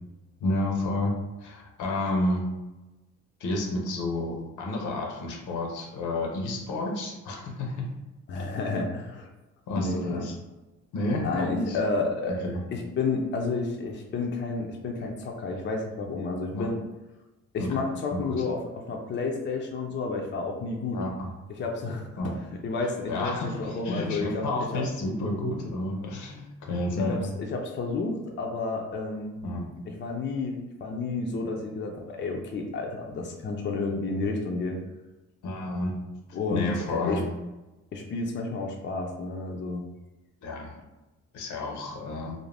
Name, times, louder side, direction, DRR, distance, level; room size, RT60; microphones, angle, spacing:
voice 1, 0.4-1.1 1.4-2.4 3.4-7.8 8.3-8.5 9.7-10.3 10.9-11.8 12.3-12.6 16.5-16.7 17.6-17.8 18.1-18.4 20.9-21.3 22.2-22.3 23.1-27.4 29.4-29.8 35.4-36.0 36.5-37.2 40.4-40.7 41.3-42.3, left 2 dB, 75° left, 1 dB, 0.8 m, -30 dB
voice 2, 8.3-9.3 9.8-10.3 11.2-16.8 17.5-18.6 18.9-21.0 21.6-22.1 22.6-24.4 24.7-24.8 27.0-29.4 29.9-34.8 36.3-37.2 37.9-39.8, left 3 dB, 40° left, 1 dB, 0.4 m, -31 dB
2.5 x 2.0 x 3.2 m, 1.0 s
cardioid pair, 90°, 30 cm